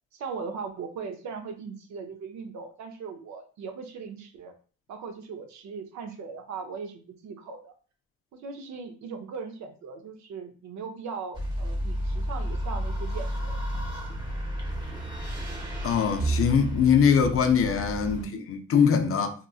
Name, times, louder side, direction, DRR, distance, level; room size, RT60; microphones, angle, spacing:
voice 1, 0.1-4.5 4.9-7.7 8.3-13.6 14.1-14.2 18.1-18.4 19.0-19.2, right 5 dB, 65° right, 0.6 m, -39 dB
sound 1, 11.3-18.2, right 1 dB, 15° right, 0.8 m, -31 dB
voice 2, 15.8-19.3, left 7 dB, 45° left, 0.4 m, -22 dB
3.0 x 2.4 x 2.3 m
cardioid pair, 90°, 30 cm